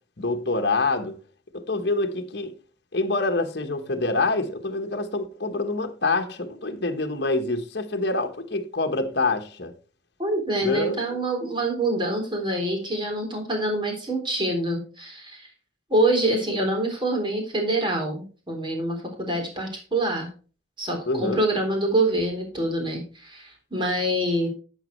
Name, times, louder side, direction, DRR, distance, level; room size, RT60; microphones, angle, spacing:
voice 1, 0.2-1.2 1.5-2.5 2.9-9.7 10.6-11.0 21.1-21.4, left 3 dB, 60° left, 1.2 m, -26 dB
voice 2, 10.2-15.5 15.9-20.3 20.8-24.5, right 1 dB, 25° right, 3.5 m, -26 dB
11.5 x 8.1 x 3.1 m
head